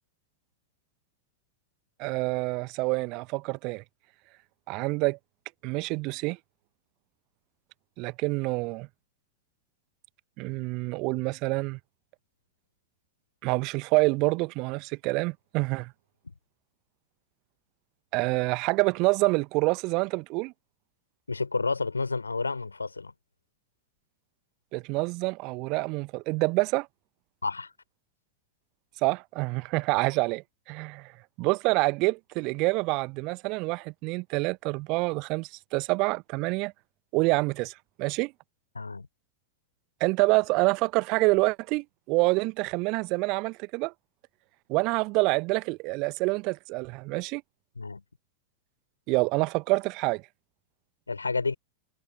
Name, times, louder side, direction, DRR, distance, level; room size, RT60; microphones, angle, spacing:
voice 1, 2.0-3.8 4.7-5.2 5.6-6.4 8.0-8.9 10.4-11.8 13.4-15.9 18.1-20.5 24.7-26.9 29.0-31.1 31.4-36.7 37.1-37.7 38.0-38.3 40.0-43.9 44.7-47.4 49.1-50.2, right 26 dB, 40° right, 1.1 m, -27 dB
voice 2, 21.3-23.1 27.4-27.7 38.7-39.1 47.8-48.0 51.1-51.5, left 4 dB, 80° left, 4.9 m, -30 dB
figure-of-eight pair, 90°, 0 cm